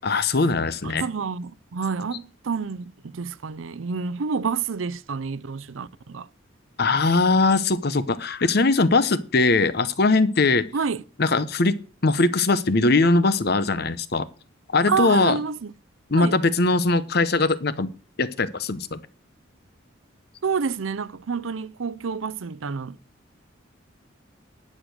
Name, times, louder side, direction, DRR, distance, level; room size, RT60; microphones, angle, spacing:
voice 1, 0.0-1.0 6.8-10.7 11.2-11.8 12.0-14.3 14.7-15.4 16.1-17.9 18.2-19.0, left 3 dB, 55° left, 0.9 m, -21 dB
voice 2, 0.8-6.3 10.7-11.0 14.9-15.7 16.2-16.4 20.4-23.0, right 5 dB, 85° right, 0.6 m, -28 dB
11.0 x 6.6 x 6.5 m
head